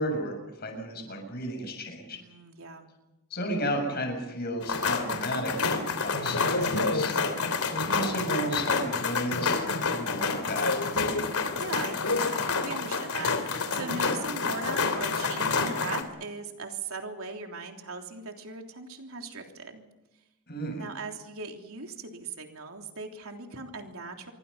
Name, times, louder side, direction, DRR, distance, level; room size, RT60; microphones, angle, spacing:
voice 1, 0.0-2.2 3.3-7.4 7.7-10.8 20.5-20.8, equal, 45° left, 3 dB, 7.1 m, -33 dB
voice 2, 2.1-2.9 11.1-19.8 20.7-24.3, right 3 dB, 75° right, 3 dB, 3.3 m, -39 dB
sound 1, 4.6-16.0, left 4 dB, 80° left, 3.2 m, -28 dB
27.5 x 24.0 x 5.7 m, 0.97 s
head